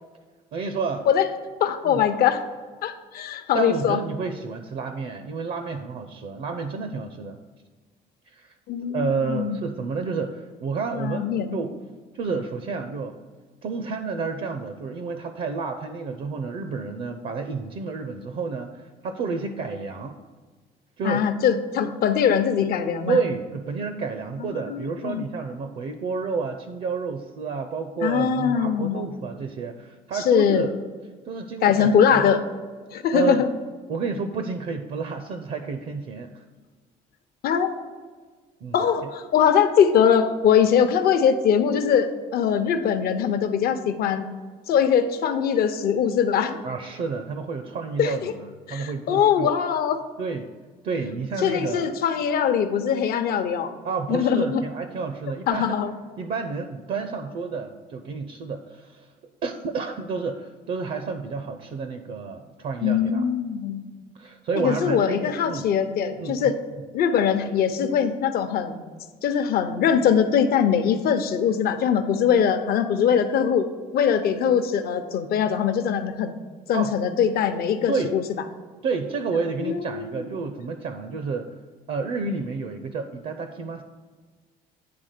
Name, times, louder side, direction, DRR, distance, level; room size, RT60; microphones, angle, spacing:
voice 1, 0.5-1.1 1.8-2.1 3.5-7.4 8.3-8.5 8.9-11.7 12.1-13.2 13.6-20.2 21.0-21.2 23.1-30.7 31.3-32.3 33.1-33.4 33.9-36.4 38.6-38.9 46.6-49.5 50.2-50.5 50.8-51.9 53.8-55.8 56.2-59.1 59.4-63.2 64.1-65.7 66.2-66.6 76.7-76.9 77.9-78.2 78.8-81.6 81.9-83.8, right 4 dB, 60° right, 7 dB, 0.6 m, -30 dB
voice 2, 1.6-2.4 2.8-4.0 8.7-9.6 10.9-11.6 21.0-23.2 24.4-25.2 28.0-29.1 30.3-30.7 31.6-32.4 32.9-33.5 37.4-37.7 38.7-44.3 44.7-46.6 48.0-48.3 48.7-50.0 51.4-53.7 54.1-54.6 55.5-55.9 62.8-63.9 64.6-66.5 66.9-68.8 69.2-73.7 73.9-76.3 76.7-78.2 79.6-80.1, left 8 dB, 65° left, 8 dB, 0.8 m, -22 dB
9.6 x 3.5 x 6.6 m, 1.4 s
cardioid pair, 110°, 17 cm